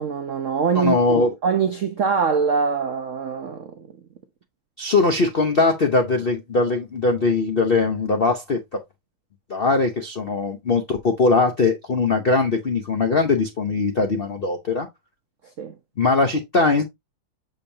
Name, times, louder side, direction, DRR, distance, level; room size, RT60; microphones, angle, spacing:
voice 1, 0.0-3.9 15.6-15.8, right 6 dB, 85° right, 0.6 m, -23 dB
voice 2, 0.7-1.3 4.8-8.8 9.5-14.9 16.0-16.8, left 3 dB, 85° left, 0.5 m, -21 dB
6.7 x 5.2 x 2.8 m
omnidirectional pair, 2.3 m